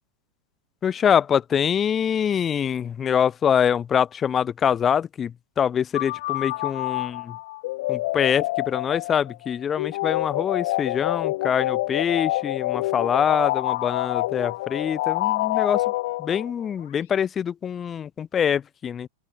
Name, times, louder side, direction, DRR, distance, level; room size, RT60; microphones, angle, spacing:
voice 1, 0.8-7.4 7.9-15.8 16.2-19.1, left 8 dB, 25° left, 1.5 m, -24 dB
sound 1, 5.9-16.7, left 18 dB, 50° left, 0.4 m, -27 dB
open air
figure-of-eight pair, 90°, 0 cm